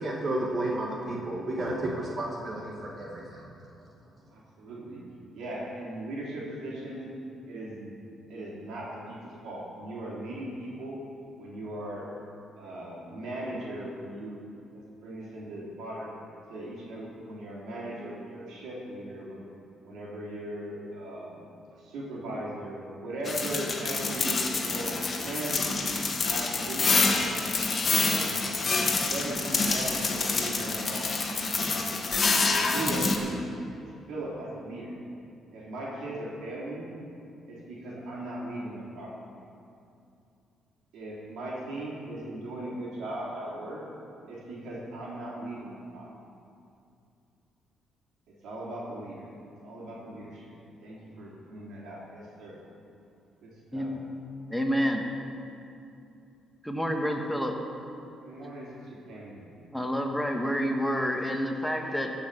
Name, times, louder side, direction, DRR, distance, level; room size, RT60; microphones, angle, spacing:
voice 1, 0.0-3.5, right 1 dB, 45° right, -2 dB, 1.7 m, -32 dB
voice 2, 4.3-5.0 5.3-7.1 7.5-7.9 8.3-11.0 11.4-12.2 12.6-14.4 14.7-16.1 16.5-19.4 19.8-21.4 21.8-25.9 26.2-27.1 27.8-28.4 29.0-31.1 32.4-33.4 33.7-35.0 35.5-36.9 37.5-39.3 40.9-43.9 44.3-46.1 48.4-49.3 49.6-50.5 50.8-52.6 53.4-54.0 58.2-59.5, right 1 dB, 85° right, -5 dB, 3.1 m, -38 dB
sound 1, 23.2-33.2, left 3 dB, 40° left, 1.4 m, -27 dB
voice 3, 54.5-55.0 56.6-57.6 59.7-62.1, equal, ahead, 2 dB, 1.4 m, -28 dB
15.5 x 5.8 x 6.7 m, 2.6 s
cardioid pair, 90°, 0 cm